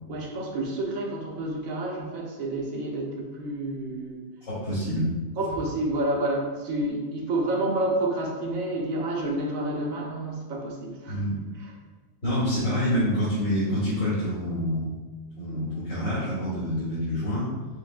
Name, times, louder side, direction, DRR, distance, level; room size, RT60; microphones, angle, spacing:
voice 1, 0.1-4.2 5.4-11.2, right 1 dB, 75° right, -1 dB, 1.3 m, -29 dB
voice 2, 4.4-5.1 11.1-11.4 12.2-14.9 15.4-17.5, equal, 65° left, -12 dB, 2.1 m, -27 dB
5.9 x 3.2 x 2.4 m, 1.3 s
omnidirectional pair, 1.5 m